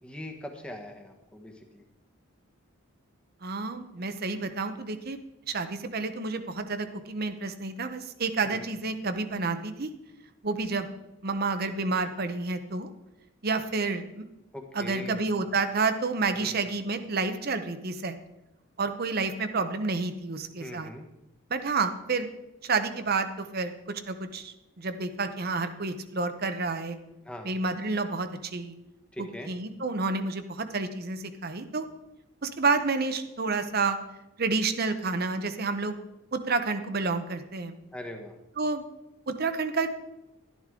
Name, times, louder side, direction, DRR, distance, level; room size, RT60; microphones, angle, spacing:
voice 1, 0.0-1.8 8.4-8.6 14.5-15.2 16.3-16.6 20.6-21.0 27.2-27.5 29.1-29.5 37.9-38.4, left 1 dB, 5° left, 2 dB, 1.3 m, -41 dB
voice 2, 3.4-5.2 5.5-9.9 10.4-10.9 11.2-12.9 13.4-14.2 14.7-18.2 18.8-20.9 21.5-22.3 22.6-27.0 27.4-28.7 29.2-31.8 32.4-34.0 34.4-36.0 36.3-37.7 38.6-38.8 39.3-39.9, right 4 dB, 45° right, 9 dB, 0.8 m, -29 dB
12.5 x 11.0 x 3.7 m, 0.93 s
head